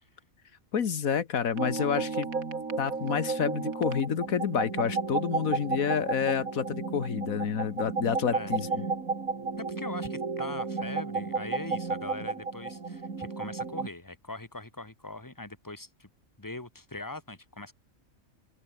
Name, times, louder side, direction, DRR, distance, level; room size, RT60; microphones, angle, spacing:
voice 1, 0.7-2.3 2.8-8.8, left 7 dB, 90° left, 1.8 m, -29 dB
sound 1, 1.6-13.9, right 4 dB, 90° right, 3.1 m, -33 dB
voice 2, 9.6-16.1 16.4-17.7, left 2 dB, 15° left, 2.4 m, -41 dB
open air
omnidirectional pair, 1.4 m